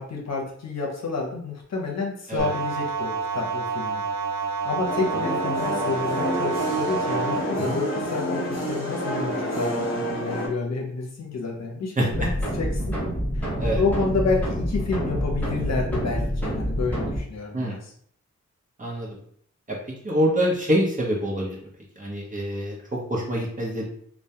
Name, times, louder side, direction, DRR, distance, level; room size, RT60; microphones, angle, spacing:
voice 1, 0.0-4.1 4.6-9.7 10.1-12.3 12.6-13.0 13.3-13.4 13.8-17.9, left 3 dB, 65° left, -1 dB, 0.7 m, -29 dB
sound 1, 2.4-7.4, right 5 dB, 75° right, 0.5 m, -28 dB
sound 2, 4.8-10.5, equal, 45° left, 1.0 m, -28 dB
sound 3, 12.1-17.2, equal, 5° left, 0.8 m, -27 dB
voice 2, 20.0-21.6 22.0-22.8 23.1-23.9, equal, 30° right, -3 dB, 0.7 m, -25 dB
2.2 x 2.1 x 2.8 m, 0.62 s
wide cardioid pair, 120°, 29 cm